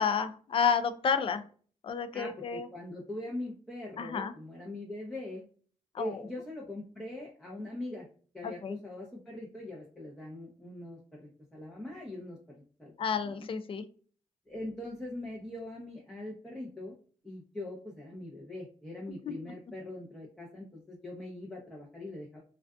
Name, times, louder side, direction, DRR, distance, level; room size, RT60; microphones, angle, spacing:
voice 1, 0.0-1.4 1.8-2.7 4.0-4.3 5.9-6.2 8.4-8.8 13.0-13.8 19.1-19.3, left 6 dB, 45° left, 10 dB, 0.4 m, -30 dB
voice 2, 2.1-5.5 6.0-8.1 8.3-13.5 14.5-16.9 17.2-22.4, left 1 dB, 5° left, -3 dB, 0.7 m, -42 dB
2.5 x 2.3 x 2.3 m, 0.43 s
cardioid pair, 75°, 13 cm